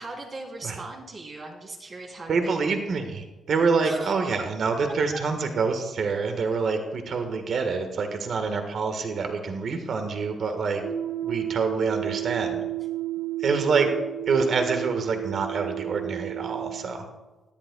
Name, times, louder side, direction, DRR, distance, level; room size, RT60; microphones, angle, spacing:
voice 1, 0.0-2.7 3.8-4.5, right 2 dB, 45° right, 0 dB, 3.1 m, -38 dB
voice 2, 2.3-10.8 11.2-12.6 13.4-13.9 14.3-17.1, right 4 dB, 65° right, 6 dB, 1.4 m, -26 dB
sound 1, 10.8-16.9, right 14 dB, 85° right, 1.4 m, -32 dB
17.5 x 10.5 x 2.3 m, 1.1 s
cardioid pair, 70°, 0 cm